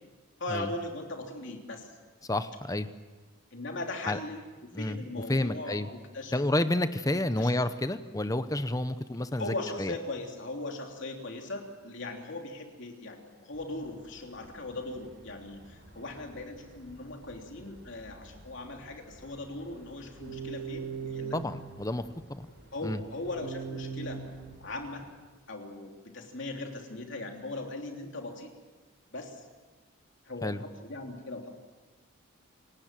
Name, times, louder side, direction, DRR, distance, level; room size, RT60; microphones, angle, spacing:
voice 1, 0.4-1.9 3.5-6.4 7.1-7.6 9.4-21.4 22.7-24.2 24.6-25.0 25.5-28.5 29.1-29.5 30.2-31.5, left 2 dB, 55° left, 2 dB, 3.2 m, -39 dB
voice 2, 2.2-2.9 4.1-4.2 4.7-5.0 5.3-5.9 6.3-9.9 21.3-22.0 22.3-22.5 22.8-23.0 30.4-30.6, left 1 dB, 15° left, 11 dB, 0.8 m, -30 dB
sound 1, 13.5-25.0, right 5 dB, 60° right, 7.3 m, -44 dB
28.5 x 17.5 x 7.6 m, 1.3 s
head